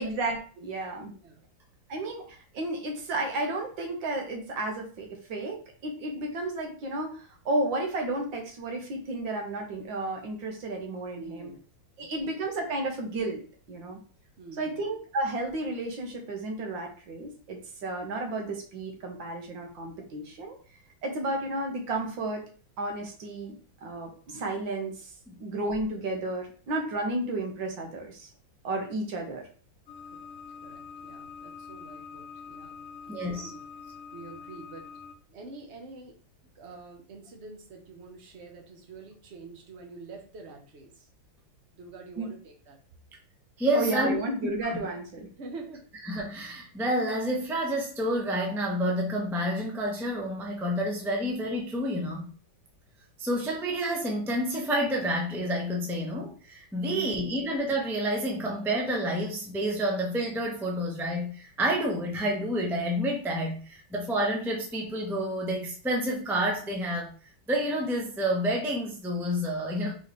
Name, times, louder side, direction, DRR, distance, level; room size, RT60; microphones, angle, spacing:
voice 1, 0.0-1.1 1.9-5.6 5.8-11.5 12.0-13.4 13.7-14.0 14.6-20.6 21.0-22.4 22.8-23.5 23.8-25.1 25.4-28.3 28.6-29.5 42.2-42.3 43.7-45.3 56.9-57.5, right 2 dB, 80° right, 2 dB, 1.8 m, -32 dB
voice 2, 11.2-11.7 12.0-12.4 14.4-14.8 30.1-30.3 30.6-33.6 34.1-34.9 35.3-36.2 36.5-41.1 41.7-42.8 45.4-45.8, right 3 dB, 45° right, 2 dB, 1.0 m, -46 dB
sound 1, 29.9-35.1, left 6 dB, 55° left, 0.9 m, -45 dB
voice 3, 33.1-33.5 43.6-44.2 44.4-44.7 46.0-52.2 53.2-67.1 67.5-69.9, equal, 5° right, -2 dB, 0.3 m, -29 dB
4.0 x 4.0 x 3.2 m, 0.41 s
omnidirectional pair, 2.1 m